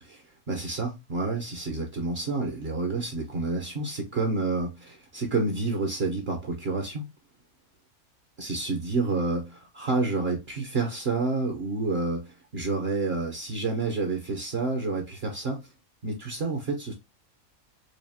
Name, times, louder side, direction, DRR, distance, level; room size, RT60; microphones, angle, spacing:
voice 1, 0.0-7.1 8.4-15.7 16.0-16.9, right 3 dB, 50° right, 1.0 m, -29 dB
4.8 x 2.4 x 2.7 m
omnidirectional pair, 1.5 m